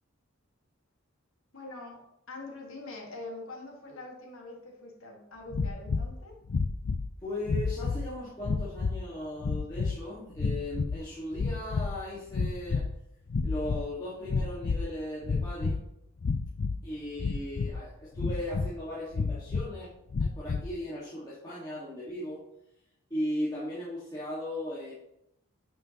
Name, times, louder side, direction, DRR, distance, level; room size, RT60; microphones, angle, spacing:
voice 1, 1.5-6.4, left 2 dB, 70° left, 0 dB, 1.6 m, -44 dB
sound 1, 5.5-6.1 6.5-7.1 7.4-8.1 8.4-9.0 9.4-9.9 10.4-11.0 11.3-12.0 12.3-13.0 13.3-13.9 14.3-14.9 15.2-15.8 16.2-16.8 17.2-17.8 18.2-18.7 19.1-19.7 20.1-20.7, left 4 dB, 50° left, 0.4 m, -30 dB
voice 2, 7.2-12.8 13.4-15.8 16.8-19.9 20.2-22.4 23.1-24.9, left 1 dB, 15° left, -9 dB, 1.5 m, -37 dB
9.0 x 5.5 x 2.8 m, 0.82 s
head